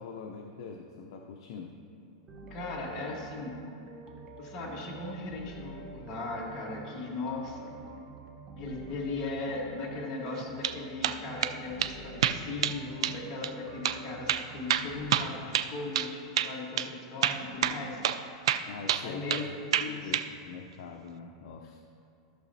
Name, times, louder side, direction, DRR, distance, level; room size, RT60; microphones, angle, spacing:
voice 1, 0.0-1.8 18.7-19.5 19.8-21.8, left 5 dB, 65° left, 2 dB, 0.6 m, -43 dB
sound 1, 2.3-15.1, right 3 dB, 25° right, 0.8 m, -48 dB
voice 2, 2.5-3.6 4.4-7.8 8.6-18.0 19.0-19.4 19.8-20.2, left 3 dB, 30° left, -4 dB, 1.4 m, -38 dB
sound 2, 10.4-10.8 11.0-11.5 11.8-11.9 12.2-12.8 13.0-13.2 13.4-13.5 13.8-14.0 14.3-16.1 16.4-16.5 16.8-16.9 17.2-17.8 18.0-18.2 18.5-19.5 19.7-20.3, right 10 dB, 85° right, 0.4 m, -28 dB
14.5 x 6.5 x 2.7 m, 2.5 s
supercardioid pair, 160°, 3 cm